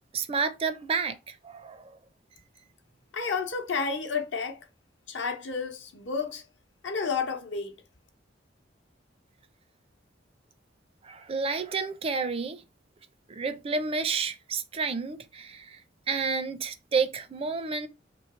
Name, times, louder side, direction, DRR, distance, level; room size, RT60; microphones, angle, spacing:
voice 1, 0.1-2.0 11.0-12.6 13.3-15.8 16.1-17.9, right 4 dB, 30° right, 0.4 m, -30 dB
voice 2, 3.1-4.6 5.1-6.4 6.8-7.8, left 5 dB, 75° left, 0.8 m, -31 dB
3.1 x 3.0 x 4.2 m
head